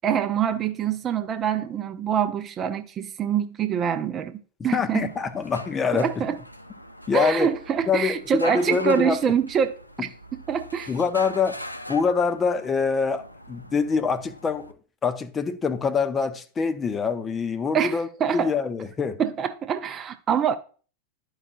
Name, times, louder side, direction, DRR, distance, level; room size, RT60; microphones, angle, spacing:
voice 1, 0.0-4.4 4.6-5.1 5.9-6.4 7.1-10.9 17.7-18.5 19.2-20.6, right 8 dB, 30° right, 0.5 m, -25 dB
voice 2, 4.6-6.2 7.1-7.5 7.9-9.2 10.9-11.6 11.9-14.7 15.0-18.1 18.3-19.2, left 5 dB, 20° left, 0.6 m, -25 dB
sound 1, 4.9-14.7, left 1 dB, 85° left, 0.5 m, -40 dB
11.5 x 4.8 x 2.5 m
figure-of-eight pair, 90°, 0 cm